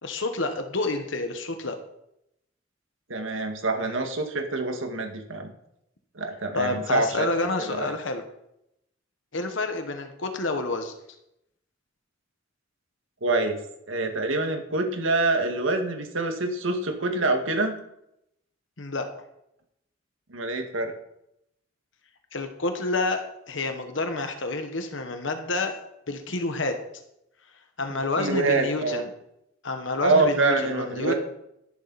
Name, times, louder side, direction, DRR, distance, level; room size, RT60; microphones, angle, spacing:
voice 1, 0.0-1.8 6.5-8.2 9.3-10.9 18.8-19.1 22.3-25.8 26.1-26.8 27.8-29.1 29.6-31.1, left 2 dB, 70° left, 6 dB, 1.3 m, -29 dB
voice 2, 3.1-5.5 6.2-7.3 7.6-7.9 13.2-13.6 13.9-17.8 20.3-20.9 28.2-29.0 30.0-31.1, right 3 dB, 80° right, 4 dB, 1.9 m, -25 dB
12.5 x 11.5 x 4.2 m, 0.81 s
head